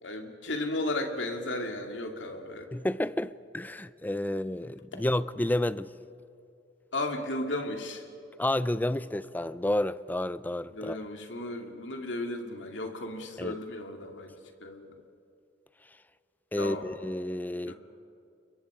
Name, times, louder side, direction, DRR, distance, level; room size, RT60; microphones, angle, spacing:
voice 1, 0.0-2.7 4.9-5.0 6.9-8.0 10.7-14.3 14.6-14.9 16.6-16.9 17.7-17.8, left 2 dB, 85° left, 4 dB, 2.4 m, -34 dB
voice 2, 2.7-5.9 8.4-11.0 13.4-13.6 16.5-17.8, left 1 dB, 10° left, 16 dB, 0.4 m, -30 dB
30.0 x 22.0 x 4.9 m, 2.5 s
head